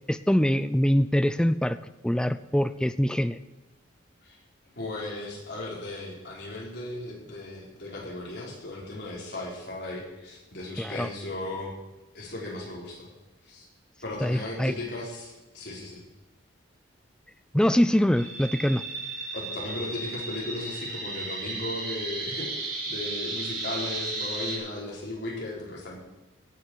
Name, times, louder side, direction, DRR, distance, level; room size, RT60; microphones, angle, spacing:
voice 1, 0.1-1.8 2.0-3.4 10.8-11.1 14.2-14.7 17.5-18.8, equal, 5° left, 12 dB, 0.4 m, -24 dB
voice 2, 4.8-11.7 12.1-13.1 13.4-13.7 14.0-16.0 19.3-26.0, left 2 dB, 55° left, -3 dB, 4.4 m, -36 dB
sound 1, 18.1-24.6, right 2 dB, 45° right, 5.5 m, -34 dB
17.0 x 7.4 x 6.3 m, 1.0 s
head